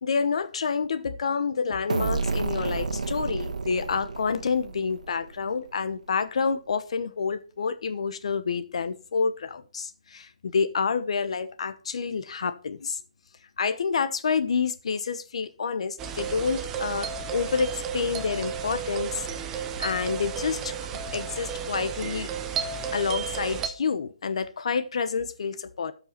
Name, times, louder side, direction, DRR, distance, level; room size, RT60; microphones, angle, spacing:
voice 1, 0.0-13.0 13.6-22.3 22.9-25.9, left 5 dB, 60° left, 0.9 m, -28 dB
sound 1, 1.9-5.5, right 4 dB, 90° right, 1.4 m, -31 dB
sound 2, 16.0-23.7, right 7 dB, 10° right, 0.6 m, -33 dB
12.5 x 5.4 x 4.4 m
hypercardioid pair, 170°, 4 cm